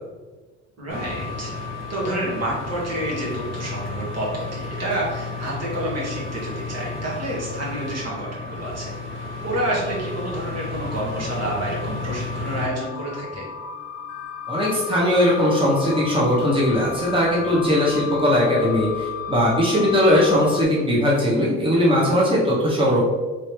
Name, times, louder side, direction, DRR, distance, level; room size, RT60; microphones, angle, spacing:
voice 1, 0.8-1.5 1.9-8.9 9.4-13.5, right 1 dB, 55° right, -5 dB, 1.4 m, -29 dB
sound 1, 0.9-12.7, left 3 dB, 40° right, 1.1 m, -32 dB
Bit Forest end music, 12.6-20.6, left 9 dB, 65° left, 0.6 m, -33 dB
voice 2, 14.5-23.0, equal, 15° right, -6 dB, 1.1 m, -19 dB
3.3 x 2.8 x 3.2 m, 1.3 s
cardioid pair, 90°, 30 cm